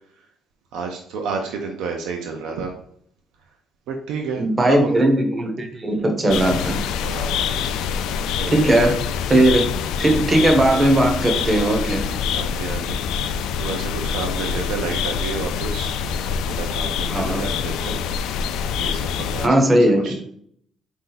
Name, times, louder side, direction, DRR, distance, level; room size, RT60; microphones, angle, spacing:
voice 1, 0.7-2.7 3.9-4.9 7.0-7.6 8.2-8.7 12.3-15.9 16.4-18.0 18.8-20.2, right 5 dB, 85° right, 2 dB, 0.6 m, -31 dB
voice 2, 4.4-6.8 8.5-9.0 9.3-9.7 10.0-12.1 17.1-17.5 19.4-20.2, right 1 dB, 15° right, 4 dB, 0.6 m, -18 dB
sound 1, 6.3-19.5, left 7 dB, 90° left, 0.3 m, -25 dB
4.5 x 2.7 x 3.9 m, 0.64 s
cardioid pair, 180°, 0 cm